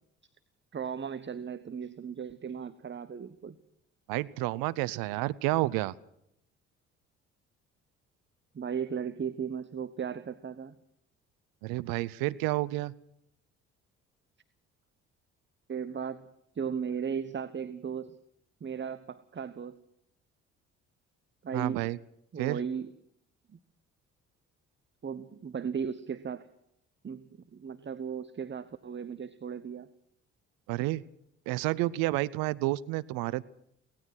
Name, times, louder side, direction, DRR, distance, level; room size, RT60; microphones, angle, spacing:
voice 1, 0.7-3.6 8.5-10.7 15.7-16.3 16.5-18.2 18.6-19.8 21.4-21.9 22.3-22.9 23.5-23.6 25.0-26.5 27.0-29.9, right 7 dB, 30° right, 13 dB, 1.1 m, -36 dB
voice 2, 4.1-5.9 11.6-12.9 21.5-22.0 22.4-22.6 30.7-31.0 31.5-33.4, right 18 dB, 70° right, 18 dB, 0.8 m, -30 dB
24.0 x 18.0 x 6.1 m, 0.75 s
hypercardioid pair, 50°, 37 cm